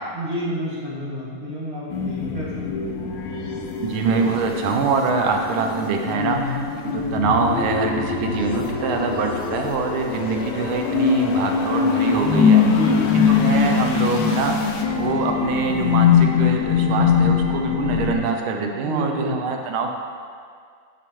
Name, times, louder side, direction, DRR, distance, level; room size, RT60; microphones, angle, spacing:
voice 1, 0.1-2.7 12.6-13.2 18.8-19.4, equal, 25° right, -9 dB, 1.6 m, -29 dB
sound 1, 1.9-18.2, left 6 dB, 75° left, 1.2 m, -22 dB
voice 2, 3.8-12.6 13.1-19.9, right 5 dB, 90° right, 3 dB, 1.5 m, -24 dB
7.8 x 6.0 x 3.1 m, 2.1 s
omnidirectional pair, 2.2 m